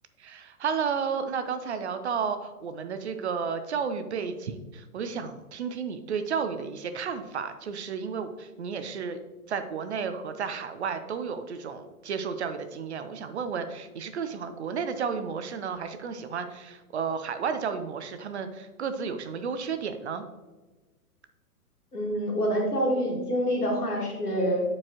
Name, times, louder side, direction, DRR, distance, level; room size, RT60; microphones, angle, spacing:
voice 1, 0.2-9.2 9.5-20.2, right 6 dB, 45° right, 9 dB, 0.6 m, -32 dB
voice 2, 21.9-24.6, equal, 75° left, -1 dB, 2.1 m, -26 dB
8.5 x 4.7 x 2.9 m, 1.2 s
figure-of-eight pair, 115°, 45 cm